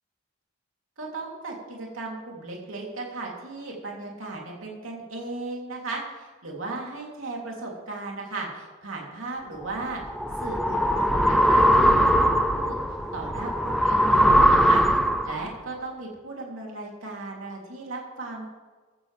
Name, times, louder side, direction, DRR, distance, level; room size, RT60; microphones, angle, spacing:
voice 1, 1.0-10.0 10.4-12.8 13.1-14.8 15.2-18.5, right 3 dB, 85° right, -2 dB, 3.1 m, -36 dB
sound 1, 9.7-15.5, equal, ahead, 0.5 m, -21 dB
15.0 x 13.0 x 3.4 m, 1.3 s
head